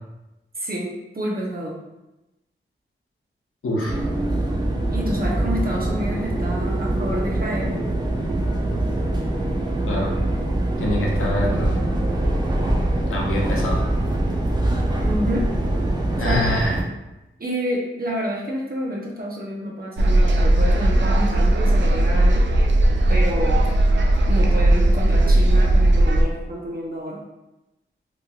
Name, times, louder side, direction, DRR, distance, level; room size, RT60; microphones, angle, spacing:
voice 1, 0.6-1.8 4.9-7.8 15.0-15.5 16.2-16.6 17.4-22.4 23.1-23.6 24.3-27.2, equal, 45° right, -3 dB, 0.8 m, -29 dB
voice 2, 3.6-4.0 9.9-10.1 10.8-11.9 13.1-13.8 16.2-16.8, left 1 dB, 80° left, -2 dB, 0.7 m, -25 dB
sound 1, 3.9-16.8, right 1 dB, 20° right, 0.6 m, -23 dB
sound 2, 20.0-26.2, right 1 dB, 65° right, 0.4 m, -17 dB
3.1 x 2.5 x 2.4 m, 0.96 s
cardioid pair, 45°, 21 cm